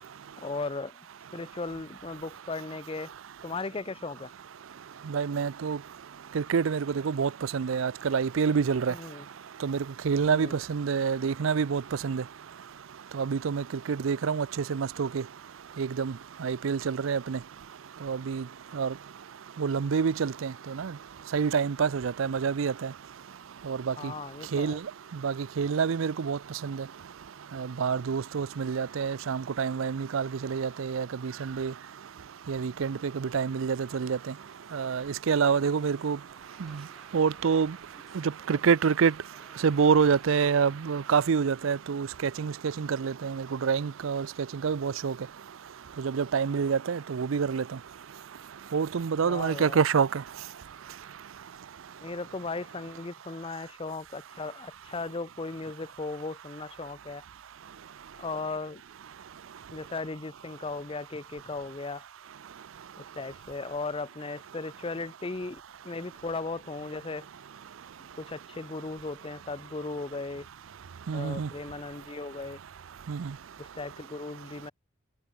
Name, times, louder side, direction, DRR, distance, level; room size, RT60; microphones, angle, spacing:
voice 1, 0.4-1.1 1.3-3.1 3.4-4.3 8.9-9.3 10.3-10.6 24.0-24.8 49.2-49.8 52.0-57.2 58.1-58.8 59.7-62.0 63.0-67.3 68.1-70.5 71.1-72.6 73.6-74.7, left 3 dB, 25° left, 0.6 m, -37 dB
voice 2, 5.1-5.8 6.3-8.9 9.6-9.8 10.0-12.2 13.1-15.2 15.8-16.1 16.4-17.4 18.0-18.4 18.7-18.9 19.6-20.9 21.3-22.9 23.7-23.9 24.5-24.8 25.2-26.8 27.5-31.7 32.5-34.2 34.7-36.2 36.6-36.8 37.1-37.8 38.1-39.1 39.6-44.3 44.6-45.1 46.0-47.6 48.7-50.1 71.1-71.5 73.1-73.3, right 6 dB, 80° right, 0.5 m, -27 dB
sound 1, 33.2-40.8, equal, ahead, 2.2 m, -60 dB
head